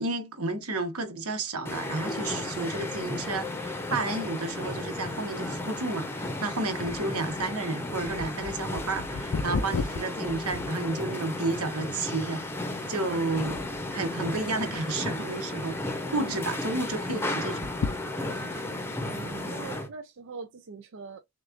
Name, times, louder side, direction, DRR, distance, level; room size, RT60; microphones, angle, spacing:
voice 1, 0.0-12.4 12.9-13.6 13.9-17.7, right 2 dB, 80° right, 1.2 m, -31 dB
sound 1, 1.6-19.9, left 2 dB, 10° left, 0.7 m, -34 dB
sound 2, 6.8-11.3 11.9-12.0 12.7-12.9 13.3-13.9 14.4-15.1 15.5-15.6 15.9-16.0 17.5-18.6 19.2-19.3, left 4 dB, 70° left, 0.4 m, -35 dB
voice 2, 16.2-16.8 19.0-21.2, right 5 dB, 55° right, 0.5 m, -43 dB
6.3 x 2.4 x 2.5 m
head